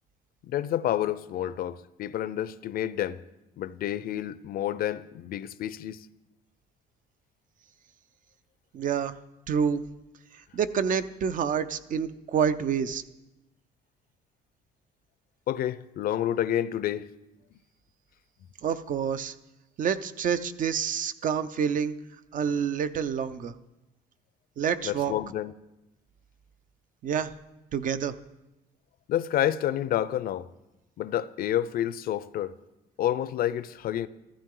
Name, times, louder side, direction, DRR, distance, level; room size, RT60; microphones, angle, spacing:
voice 1, 0.4-3.2 3.6-6.1 15.5-17.1 24.8-25.5 29.1-30.5 31.0-32.6 33.0-34.1, left 11 dB, 60° left, 0.6 m, -29 dB
voice 2, 8.7-9.2 9.5-9.8 10.5-13.0 18.6-19.3 19.8-21.9 22.3-23.5 24.6-25.1 27.0-27.3 27.7-28.1, right 7 dB, 50° right, 0.7 m, -28 dB
14.5 x 13.5 x 3.8 m
cardioid pair, 110°, 17 cm